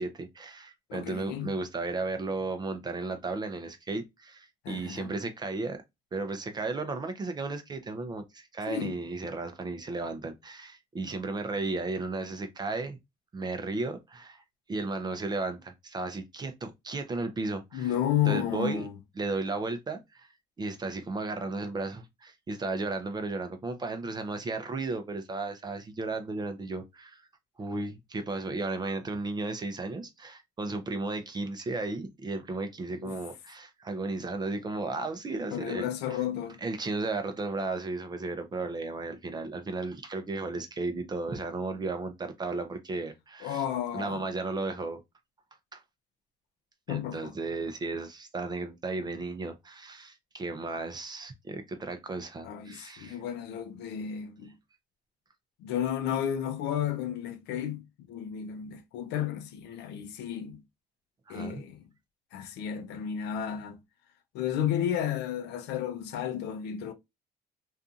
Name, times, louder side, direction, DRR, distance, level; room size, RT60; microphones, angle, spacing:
voice 1, 0.0-5.8 6.1-13.0 13.3-14.4 14.7-17.9 18.3-18.9 19.2-20.3 20.6-27.3 27.6-36.2 36.6-43.6 43.9-45.0 45.7-45.8 46.9-53.2 61.3-61.6, right 3 dB, 25° right, 0.5 m, -34 dB
voice 2, 0.9-1.5 4.6-5.1 8.7-9.0 17.7-19.0 33.0-33.2 35.5-36.6 43.4-44.2 46.9-47.3 52.4-54.5 55.6-60.6 61.3-61.9 62.3-63.8 64.3-66.9, left 9 dB, 85° left, 0.5 m, -32 dB
2.6 x 2.4 x 2.4 m
cardioid pair, 110°, 17 cm